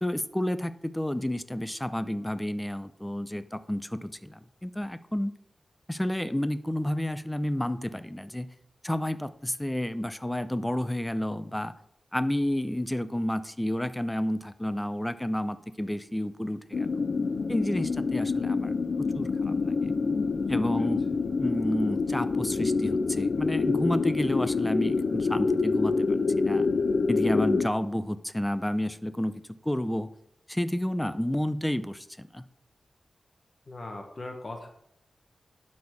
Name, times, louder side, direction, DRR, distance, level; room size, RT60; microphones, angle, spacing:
voice 1, 0.0-5.3 5.9-8.5 8.8-11.7 12.1-16.9 17.5-19.9 20.5-21.0 21.4-26.7 27.1-30.1 30.5-32.5, left 1 dB, 10° left, 12 dB, 0.6 m, -30 dB
sound 1, 16.7-27.7, left 4 dB, 65° left, 0.4 m, -27 dB
voice 2, 33.7-34.7, left 2 dB, 40° left, 3 dB, 1.4 m, -39 dB
11.5 x 4.3 x 4.8 m, 0.72 s
wide cardioid pair, 90°, 0 cm